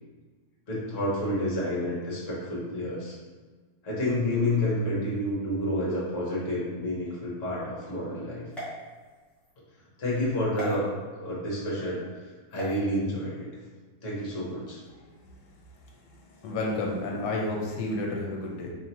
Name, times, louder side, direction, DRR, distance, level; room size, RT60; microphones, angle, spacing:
voice 1, 0.7-3.2 3.8-8.5 10.0-10.9 11.1-13.5 14.0-14.8, left 1 dB, 50° left, -6 dB, 1.4 m, -29 dB
sound 1, 8.5-9.5 10.6-10.7 12.5-12.8, equal, ahead, 1.1 m, -39 dB
voice 2, 15.8-18.7, left 2 dB, 75° left, -1 dB, 1.3 m, -31 dB
4.8 x 2.8 x 2.8 m, 1.4 s
omnidirectional pair, 1.8 m